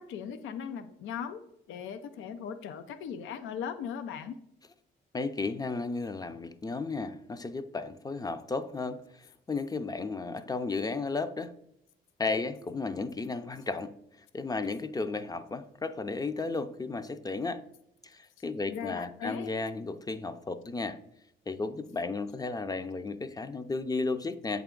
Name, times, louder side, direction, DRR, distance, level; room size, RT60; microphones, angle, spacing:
voice 1, 0.0-1.4 1.7-4.4 18.7-19.5, left 7 dB, 80° left, 10 dB, 0.5 m, -38 dB
voice 2, 5.1-11.5 12.2-13.9 14.3-17.6 18.0-21.0 21.5-24.6, left 3 dB, 20° left, 12 dB, 0.5 m, -34 dB
8.1 x 3.5 x 3.7 m, 0.78 s
cardioid pair, 90°, 20 cm